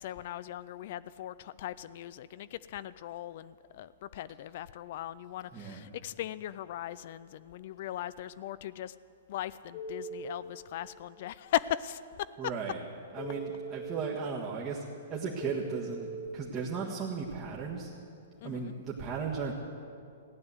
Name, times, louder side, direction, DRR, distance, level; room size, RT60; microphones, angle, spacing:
voice 1, 0.0-8.9 9.3-12.3 18.4-18.7, left 12 dB, 55° left, 16 dB, 0.4 m, -38 dB
voice 2, 5.5-5.9 12.4-16.1 16.3-17.9 18.4-19.5, right 5 dB, 30° right, -5 dB, 1.6 m, -36 dB
Telephone, 9.7-10.3 13.2-14.2 15.4-16.3, right 2 dB, 35° left, 1.4 m, -40 dB
15.5 x 9.6 x 8.1 m, 2.5 s
figure-of-eight pair, 115°, 0 cm